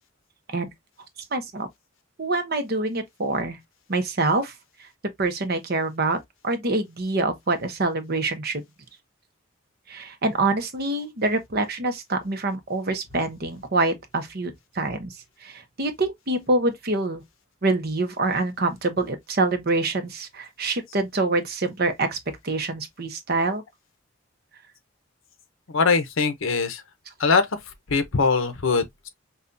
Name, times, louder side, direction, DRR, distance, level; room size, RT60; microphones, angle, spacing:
voice 1, 1.3-1.7 2.2-3.6 3.9-4.5 5.2-6.2 6.4-8.6 9.9-15.1 15.4-17.2 17.6-22.2 22.4-23.6, right 2 dB, 50° right, 0.9 m, -25 dB
voice 2, 25.7-26.8 27.2-27.5 27.9-29.1, left 4 dB, 80° left, 0.8 m, -22 dB
5.5 x 2.4 x 2.6 m
head